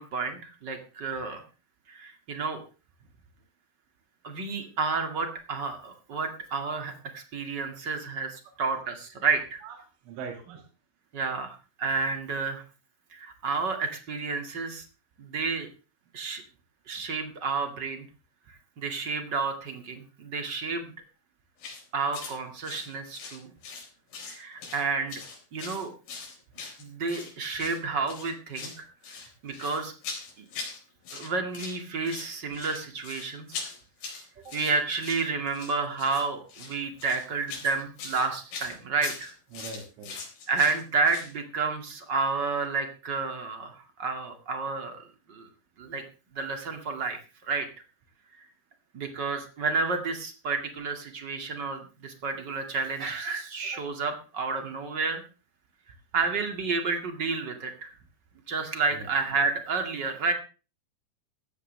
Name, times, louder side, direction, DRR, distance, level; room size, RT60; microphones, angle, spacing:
voice 1, 0.0-1.4 1.9-2.6 4.2-9.6 11.1-12.6 13.1-14.8 15.2-15.7 16.1-16.4 16.9-18.1 18.8-20.9 21.9-23.5 24.2-25.2 25.5-25.9 26.8-28.8 29.4-29.9 30.4-30.5 31.1-33.7 34.4-39.3 40.5-45.5 45.8-46.0 46.3-47.7 48.9-55.2 56.1-57.9 58.5-60.3, right 4 dB, 40° right, 6 dB, 1.6 m, -30 dB
voice 2, 10.0-10.6 39.5-40.1 58.9-59.1, right 4 dB, 85° right, 3 dB, 4.5 m, -40 dB
sound 1, 21.6-21.8 22.1-22.4 22.6-23.9 24.1-24.8 25.1-27.3 27.6-27.8 28.1-28.8 29.0-30.8 31.0-31.8 32.0-41.3, left 5 dB, 75° left, 6.6 m, -41 dB
16.5 x 13.5 x 3.3 m, 0.34 s
omnidirectional pair, 5.3 m